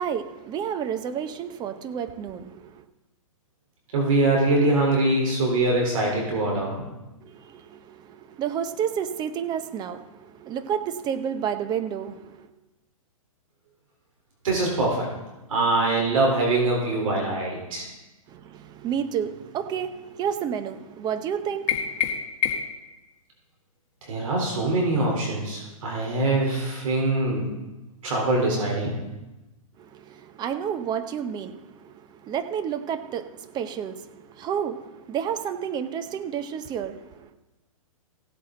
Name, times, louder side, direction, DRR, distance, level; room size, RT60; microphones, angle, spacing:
voice 1, 0.0-2.8 7.2-12.5 18.3-22.1 29.8-37.3, right 8 dB, 25° right, 0.9 m, -31 dB
voice 2, 3.9-6.8 14.4-15.1 15.5-17.9 24.0-27.5 28.0-28.9, right 2 dB, 70° right, 3.8 m, -23 dB
sound 1, 21.7-22.9, left 8 dB, 40° left, 1.6 m, -27 dB
16.0 x 8.3 x 3.9 m
hypercardioid pair, 125°, 18 cm